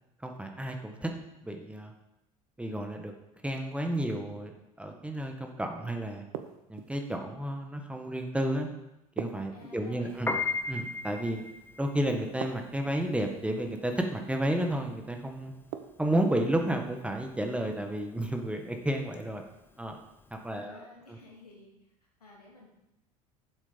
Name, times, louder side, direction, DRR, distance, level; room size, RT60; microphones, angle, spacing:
voice 1, 0.2-1.1 1.4-1.9 2.6-3.1 3.4-6.2 6.7-8.7 9.2-10.3 10.7-11.4 11.8-15.5 16.0-19.4 19.8-20.0 20.3-21.2, right 1 dB, 5° right, 3 dB, 1.7 m, -32 dB
sound 1, 6.3-7.1 9.2-10.2 12.4-13.2 15.7-16.4, right 11 dB, 60° right, 1.0 m, -41 dB
voice 2, 9.5-10.4 20.5-21.9 22.2-22.7, left 2 dB, 85° left, -2 dB, 2.9 m, -53 dB
Piano, 10.1-20.5, left 3 dB, 10° left, 1.1 m, -38 dB
11.5 x 7.3 x 5.2 m, 0.90 s
hypercardioid pair, 70°, 19 cm